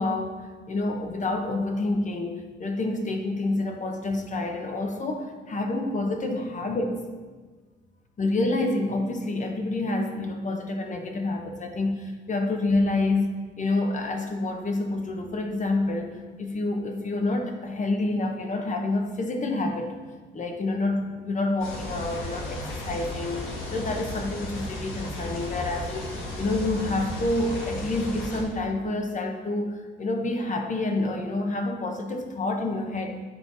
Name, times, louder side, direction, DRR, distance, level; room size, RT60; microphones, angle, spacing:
voice 1, 0.0-7.0 8.2-19.9 20.3-33.2, left 2 dB, 40° left, 3 dB, 1.1 m, -28 dB
sound 1, 21.6-28.4, left 1 dB, 85° left, 1.6 m, -34 dB
8.7 x 4.5 x 4.0 m, 1.4 s
cardioid pair, 90°, 20 cm